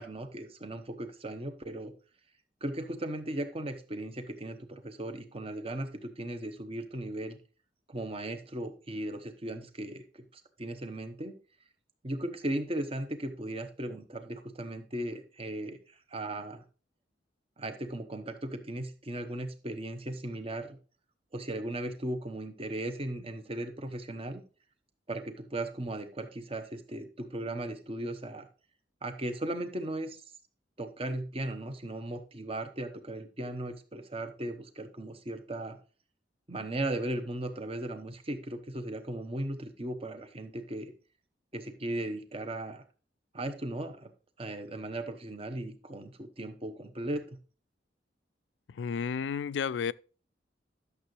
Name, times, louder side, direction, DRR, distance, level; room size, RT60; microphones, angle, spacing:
voice 1, 0.0-1.9 2.6-7.4 7.9-10.0 10.3-11.3 12.0-16.6 17.6-20.8 21.3-24.4 25.1-28.5 29.0-30.2 30.8-35.8 36.5-40.9 41.5-42.8 43.3-44.1 44.4-47.4, right 1 dB, 35° right, 1.0 m, -37 dB
voice 2, 48.7-49.9, left 6 dB, 90° left, 0.3 m, -32 dB
11.5 x 6.7 x 3.2 m
head